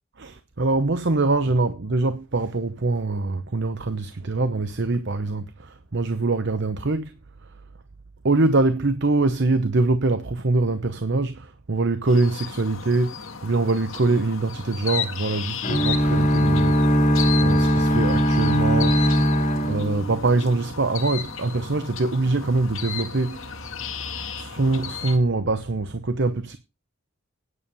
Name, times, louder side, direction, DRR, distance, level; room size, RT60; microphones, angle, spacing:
voice 1, 0.2-7.2 8.2-17.1 17.4-19.0 19.6-23.6 24.4-26.6, right 3 dB, 55° right, 0.9 m, -23 dB
sound 1, 12.1-25.2, left 7 dB, 65° left, 1.8 m, -35 dB
sound 2, 15.6-20.6, equal, 35° left, 3.0 m, -20 dB
10.0 x 7.1 x 6.9 m
head